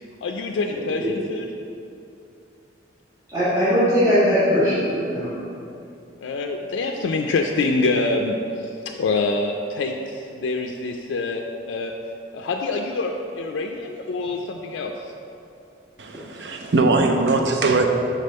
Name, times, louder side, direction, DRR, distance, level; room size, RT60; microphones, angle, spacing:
voice 1, 0.2-1.5 6.2-8.4 8.9-11.9 12.3-14.9, left 3 dB, 90° left, 2 dB, 0.3 m, -25 dB
voice 2, 0.7-1.1 3.3-5.3, equal, 20° right, -14 dB, 1.5 m, -20 dB
voice 3, 16.0-17.9, right 3 dB, 70° right, 4 dB, 0.5 m, -20 dB
5.1 x 3.6 x 5.4 m, 2.6 s
head